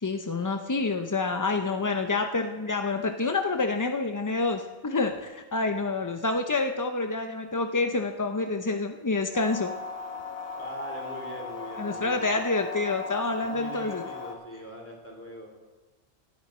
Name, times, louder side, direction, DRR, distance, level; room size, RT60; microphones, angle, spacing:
voice 1, 0.0-9.7 11.8-14.0, left 3 dB, 30° left, 5 dB, 0.3 m, -28 dB
sound 1, 9.3-14.3, left 4 dB, 60° left, 1.8 m, -38 dB
voice 2, 10.5-12.4 13.3-15.5, equal, 10° left, 0 dB, 2.9 m, -41 dB
18.0 x 9.5 x 4.3 m, 1.2 s
omnidirectional pair, 1.2 m